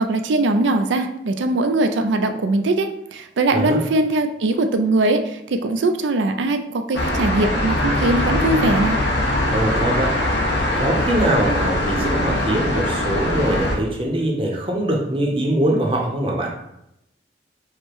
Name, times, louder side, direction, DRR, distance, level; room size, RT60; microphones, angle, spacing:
voice 1, 0.0-9.0, right 2 dB, 85° right, 7 dB, 0.4 m, -21 dB
sound 1, 6.9-13.8, left 1 dB, 70° left, 0.8 m, -22 dB
voice 2, 9.5-10.2 10.8-16.5, right 1 dB, 30° right, 0 dB, 0.7 m, -22 dB
4.9 x 2.1 x 4.5 m, 0.82 s
head